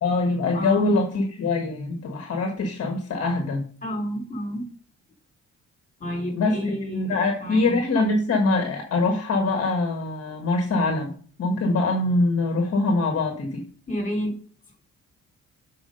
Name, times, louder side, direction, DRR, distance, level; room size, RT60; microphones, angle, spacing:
voice 1, 0.0-3.6 6.3-11.1 11.4-13.6, left 2 dB, 55° left, 3 dB, 1.4 m, -23 dB
voice 2, 0.5-1.0 3.8-4.7 6.0-7.8 13.9-14.4, equal, 25° left, 2 dB, 3.3 m, -30 dB
7.1 x 4.7 x 5.3 m, 0.43 s
cardioid pair, 90°, 30 cm